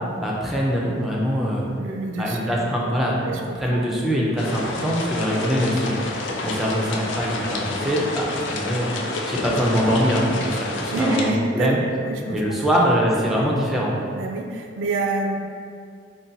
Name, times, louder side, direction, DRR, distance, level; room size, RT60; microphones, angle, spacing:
voice 1, 0.2-1.7 2.2-8.9 9.3-11.8 12.3-14.0, equal, ahead, -4 dB, 0.3 m, -23 dB
voice 2, 1.8-2.7 3.0-3.8 10.9-11.7 12.0-12.8 13.3-13.5 14.2-15.4, right 2 dB, 80° right, 3 dB, 0.3 m, -28 dB
sound 1, 4.4-11.3, left 2 dB, 70° left, 0.4 m, -29 dB
2.7 x 2.2 x 3.8 m, 2.2 s
head